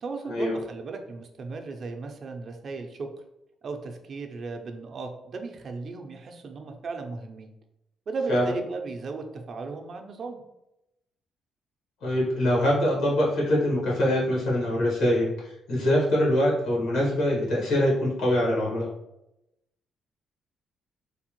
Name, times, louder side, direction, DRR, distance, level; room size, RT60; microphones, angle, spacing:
voice 1, 0.0-3.1 3.6-7.5 8.1-10.4, right 4 dB, 50° right, 4 dB, 0.4 m, -36 dB
voice 2, 12.0-18.9, left 1 dB, 85° left, -5 dB, 1.4 m, -24 dB
3.3 x 2.1 x 3.0 m, 0.85 s
cardioid pair, 90°, 0 cm